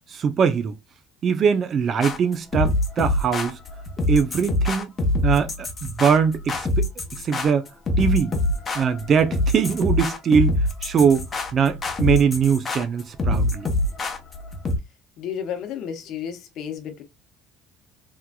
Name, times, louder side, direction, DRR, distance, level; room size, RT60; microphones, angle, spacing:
voice 1, 0.1-0.8 1.2-3.6 4.1-4.9 5.2-6.9 7.2-7.7 8.0-8.4 8.7-10.6 10.8-11.3 11.5-13.7, right 6 dB, 45° right, 0.6 m, -21 dB
sound 1, 2.0-14.8, left 1 dB, 30° left, 0.9 m, -25 dB
voice 2, 15.2-17.0, left 8 dB, 65° left, 0.9 m, -32 dB
3.5 x 3.0 x 2.2 m
cardioid pair, 110°, 0 cm